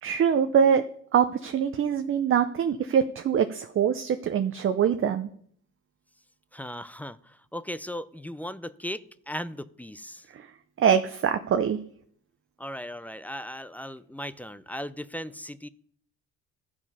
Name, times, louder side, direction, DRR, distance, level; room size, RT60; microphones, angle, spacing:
voice 1, 0.0-0.8 1.1-5.3 10.3-10.5 10.8-11.8, right 8 dB, 45° right, 0.6 m, -24 dB
voice 2, 6.5-10.3 12.6-15.7, equal, 5° left, 0.4 m, -37 dB
13.5 x 4.9 x 5.4 m
cardioid pair, 90°, 30 cm